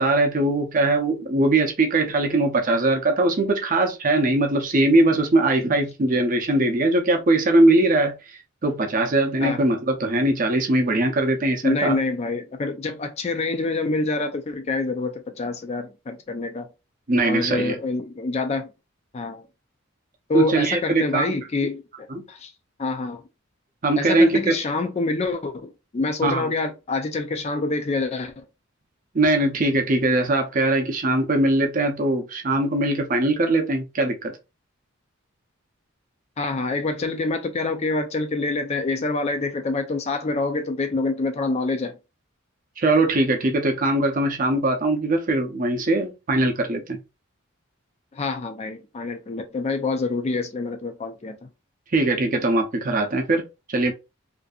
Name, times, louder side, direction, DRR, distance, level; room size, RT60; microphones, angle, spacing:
voice 1, 0.0-8.2 8.6-12.0 17.1-17.8 20.3-21.3 22.1-22.2 23.8-24.6 26.2-26.5 29.1-34.4 42.8-47.0 51.9-53.4 53.7-53.9, right 2 dB, 40° right, 0.5 m, -21 dB
voice 2, 11.6-16.7 17.2-18.7 19.1-19.4 20.3-22.5 22.8-23.2 24.0-28.4 36.4-42.0 48.1-51.4, left 3 dB, 30° left, 0.3 m, -26 dB
2.6 x 2.5 x 2.3 m
head